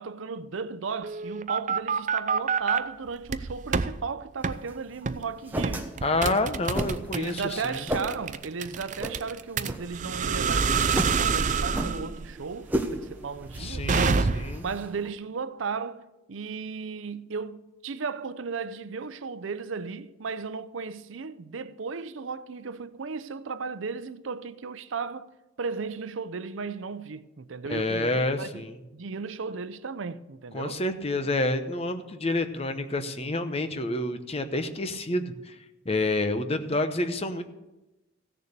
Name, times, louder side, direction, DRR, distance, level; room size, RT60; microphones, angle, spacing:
voice 1, 0.0-6.5 7.1-14.2 14.6-25.3 25.6-28.1 28.4-28.5 28.9-30.8, right 5 dB, 80° right, 0.6 m, -35 dB
sound 1, 1.0-2.8 3.3-3.9 4.4-4.6 5.1-5.3 5.6-14.7, right 5 dB, 40° right, 0.5 m, -27 dB
sound 2, 4.4-15.1, right 1 dB, 10° right, 0.9 m, -36 dB
voice 2, 6.0-7.9 13.6-14.6 27.7-28.8 30.5-35.5 35.8-37.4, left 2 dB, 30° left, 0.9 m, -28 dB
16.0 x 6.9 x 6.7 m
head